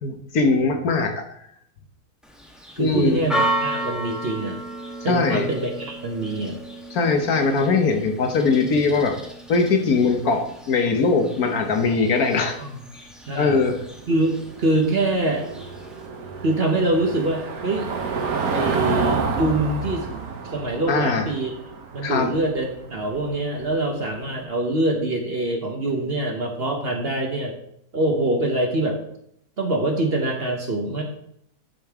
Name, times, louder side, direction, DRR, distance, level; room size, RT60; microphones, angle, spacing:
voice 1, 0.0-1.2 2.8-3.2 5.1-5.5 6.9-9.2 9.5-12.6 13.3-13.8 20.9-21.2 22.0-22.3, left 4 dB, 65° left, 5 dB, 1.5 m, -21 dB
Church bell, 2.2-16.1, right 1 dB, ahead, 0.9 m, -34 dB
voice 2, 2.8-4.6 5.0-6.6 12.6-12.8 13.3-13.6 14.1-15.5 16.4-17.9 18.5-20.1 20.4-21.5 21.9-27.5 27.9-29.0 29.6-31.0, right 2 dB, 45° right, 2 dB, 1.1 m, -24 dB
Car passing by / Engine, 13.6-24.3, right 5 dB, 65° right, 1.5 m, -29 dB
11.0 x 5.2 x 3.6 m, 0.73 s
omnidirectional pair, 1.7 m